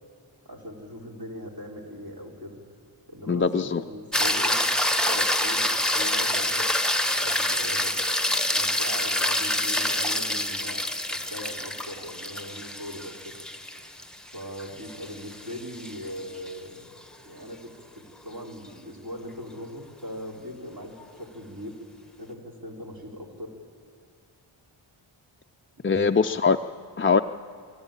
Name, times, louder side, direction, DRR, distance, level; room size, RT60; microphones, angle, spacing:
voice 1, 0.5-2.6 3.1-4.6 5.0-6.7 7.1-8.0 8.5-13.4 14.3-16.9 17.2-21.8 22.2-23.6 25.8-26.1, equal, 45° right, -1 dB, 3.8 m, -40 dB
voice 2, 3.3-3.8 25.8-26.6 27.0-27.2, left 5 dB, 25° left, 6 dB, 0.4 m, -21 dB
sound 1, 4.1-16.5 21.0-21.1, left 1 dB, ahead, 1.1 m, -26 dB
24.5 x 13.0 x 9.0 m, 2.5 s
cardioid pair, 60°, 49 cm